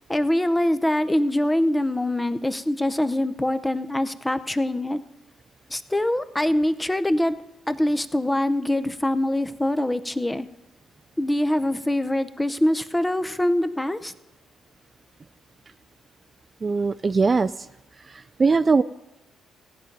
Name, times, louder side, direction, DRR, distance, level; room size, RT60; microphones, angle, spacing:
voice 1, 0.0-5.0 5.7-7.3 7.7-10.5 11.2-14.1, left 1 dB, 10° left, 12 dB, 0.7 m, -24 dB
voice 2, 16.6-17.5 18.1-18.8, right 4 dB, 30° right, 11 dB, 0.3 m, -20 dB
15.5 x 9.0 x 5.3 m, 1.0 s
cardioid pair, 90°, 0 cm